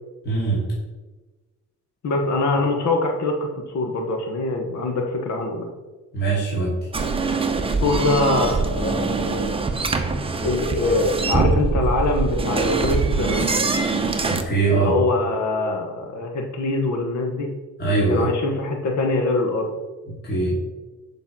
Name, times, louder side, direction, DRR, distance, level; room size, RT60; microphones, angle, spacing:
voice 1, 0.2-0.6 6.1-6.8 14.3-14.9 17.8-18.3 20.1-20.6, right 3 dB, 30° left, -6 dB, 2.4 m, -22 dB
voice 2, 2.0-5.7 7.8-9.5 10.4-13.5 14.7-17.5 18.1-19.7, left 2 dB, 60° left, 2 dB, 1.2 m, -23 dB
sound 1, 6.9-14.4, right 4 dB, 15° right, 0.7 m, -23 dB
8.2 x 5.4 x 6.0 m, 1.2 s
wide cardioid pair, 165°, 31 cm